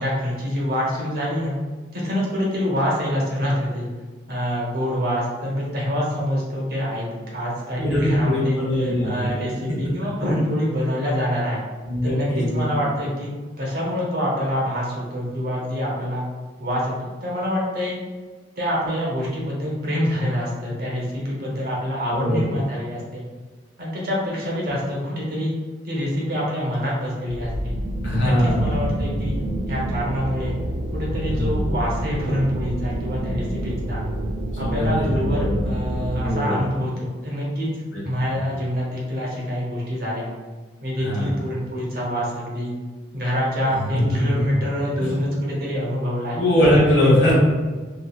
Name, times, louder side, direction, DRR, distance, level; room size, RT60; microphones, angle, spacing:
voice 1, 0.0-1.6 1.9-3.9 4.3-11.6 12.0-13.3 13.6-16.2 16.6-16.9 17.2-18.0 18.6-23.3 23.8-25.5 25.8-27.7 28.1-30.5 30.9-34.0 34.6-37.7 38.0-40.3 40.8-42.7 43.1-46.4 46.9-47.3, equal, 55° right, -4 dB, 0.8 m, -26 dB
voice 2, 7.8-9.6 11.8-12.6 22.2-22.6 28.0-28.8 31.3-31.6 34.5-35.6 36.1-36.6 37.9-38.0 38.3-38.4 41.0-41.3 43.8-44.1 45.0-45.2 46.3-47.3, left 1 dB, 80° left, -5 dB, 1.1 m, -21 dB
sound 1, 27.3-36.3, right 1 dB, 75° right, 0.4 m, -27 dB
3.0 x 2.4 x 2.3 m, 1.4 s
head